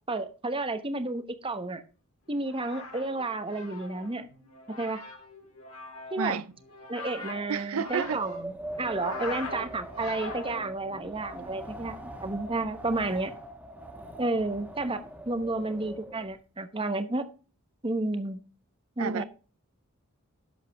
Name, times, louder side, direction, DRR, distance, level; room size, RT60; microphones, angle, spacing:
voice 1, 0.1-1.8 2.3-4.3 4.7-5.0 6.1-6.4 6.9-13.3 14.2-17.3 17.8-18.4 19.0-19.2, right 2 dB, 25° right, 1.0 m, -31 dB
sound 1, 2.3-11.0, left 3 dB, 90° left, 3.3 m, -42 dB
voice 2, 7.5-8.2 19.0-19.2, right 6 dB, 85° right, 0.5 m, -30 dB
Wind, 7.9-16.3, right 1 dB, 10° right, 1.6 m, -42 dB
11.5 x 7.4 x 3.5 m
head